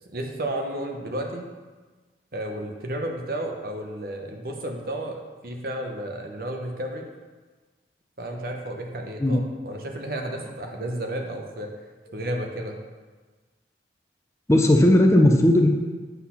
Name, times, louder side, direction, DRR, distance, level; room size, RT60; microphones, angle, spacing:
voice 1, 0.1-1.5 2.3-7.0 8.2-11.7 12.1-12.8, right 1 dB, 55° right, 2 dB, 0.9 m, -32 dB
voice 2, 14.5-15.7, left 1 dB, 15° left, 2 dB, 0.5 m, -16 dB
8.2 x 4.0 x 5.7 m, 1.3 s
head